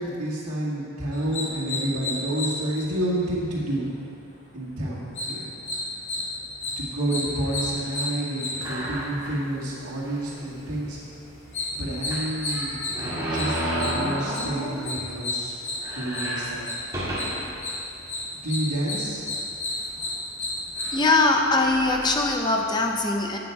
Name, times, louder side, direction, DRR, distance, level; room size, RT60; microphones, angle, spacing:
voice 1, 0.0-3.9 4.5-5.5 6.8-11.0 11.8-13.6 13.9-15.5 15.9-16.7 18.3-19.2, right 1 dB, 85° right, -6 dB, 2.1 m, -29 dB
sound 1, 1.1-20.9, left 2 dB, 55° left, 1.9 m, -33 dB
sound 2, 8.6-9.5 10.0-10.1 10.4-10.5 12.1-15.0 15.4-15.5 15.7-17.6 18.2-18.3 19.2-19.5 20.3-20.4 20.8-22.3, right 1 dB, 15° right, 2.0 m, -31 dB
voice 2, 20.9-23.4, left 2 dB, 20° left, 2 dB, 0.5 m, -21 dB
8.7 x 7.1 x 4.7 m, 2.5 s
head